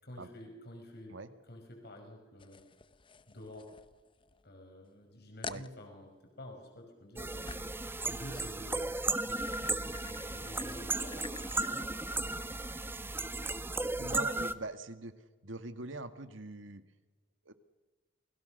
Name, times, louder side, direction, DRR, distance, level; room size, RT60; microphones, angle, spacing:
voice 1, 0.0-1.2 1.4-2.6 3.3-3.7 4.4-7.6 8.0-8.8 9.2-12.5, left 1 dB, 60° left, 4 dB, 5.7 m, -50 dB
sound 1, 2.4-4.5 4.9-5.0 5.4-5.7 7.5-7.8 8.6-11.8, left 5 dB, 25° left, 0.7 m, -49 dB
sound 2, 7.2-14.5, right 2 dB, 10° right, 1.0 m, -35 dB
voice 2, 14.0-15.1 15.4-16.8 17.4-17.5, right 2 dB, 85° right, 10 dB, 1.8 m, -42 dB
28.5 x 21.5 x 6.6 m, 1.3 s
head